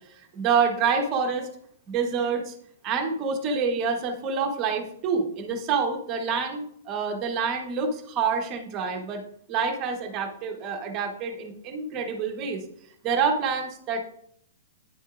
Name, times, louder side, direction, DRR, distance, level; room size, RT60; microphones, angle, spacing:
voice 1, 0.0-1.5 1.9-2.5 2.8-9.2 9.5-12.6 13.0-14.0, right 5 dB, 30° right, 3 dB, 1.1 m, -27 dB
10.0 x 6.3 x 2.5 m, 0.68 s
hypercardioid pair, 150°, 0 cm